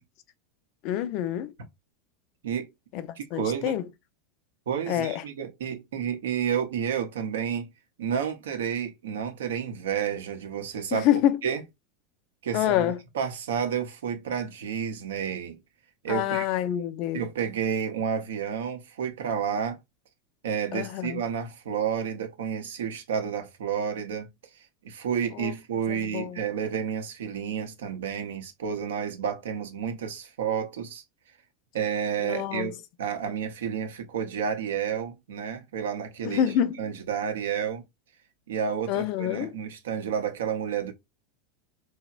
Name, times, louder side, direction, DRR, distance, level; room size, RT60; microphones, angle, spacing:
voice 1, 0.8-1.5 2.9-3.8 4.9-5.2 10.9-11.4 12.5-13.0 16.1-17.2 20.7-21.2 25.3-25.5 25.9-26.4 32.2-32.7 36.2-36.8 38.9-39.5, left 11 dB, 55° left, 0.3 m, -27 dB
voice 2, 3.2-3.7 4.7-7.7 8.0-11.1 11.4-11.6 12.4-15.6 16.0-16.4 17.1-19.8 20.4-24.3 24.8-31.0 31.7-36.4 36.8-37.8 38.5-40.9, right 7 dB, 75° right, 0.5 m, -30 dB
2.9 x 2.0 x 2.3 m
hypercardioid pair, 90°, 0 cm